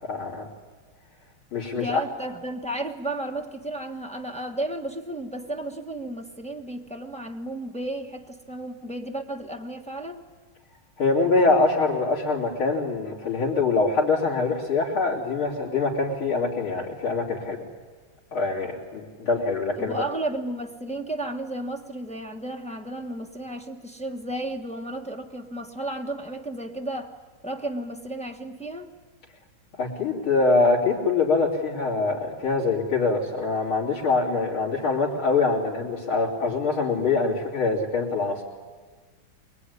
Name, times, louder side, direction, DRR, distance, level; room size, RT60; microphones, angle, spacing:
voice 1, 0.0-0.5 1.5-2.0 11.0-17.6 18.3-20.0 29.7-38.4, left 3 dB, 85° left, -5 dB, 4.2 m, -24 dB
voice 2, 1.7-10.2 19.8-27.1 27.4-28.9, right 1 dB, 5° left, 3 dB, 1.0 m, -33 dB
23.0 x 22.5 x 9.7 m, 1.4 s
omnidirectional pair, 2.2 m